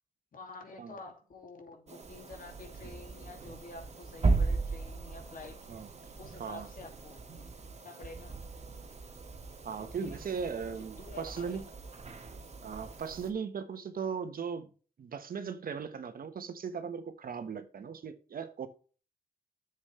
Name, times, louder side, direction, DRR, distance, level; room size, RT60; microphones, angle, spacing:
voice 1, 0.3-5.6 6.2-7.5 7.8-8.4 9.8-10.2 11.0-11.6, left 3 dB, 65° left, 2.4 m, -49 dB
sound 1, 1.9-13.3, right 3 dB, 45° right, 1.5 m, -37 dB
voice 2, 9.6-11.6 12.6-14.7 15.0-18.7, right 6 dB, 70° right, 1.3 m, -38 dB
9.9 x 7.4 x 3.3 m
cardioid pair, 65°, 15 cm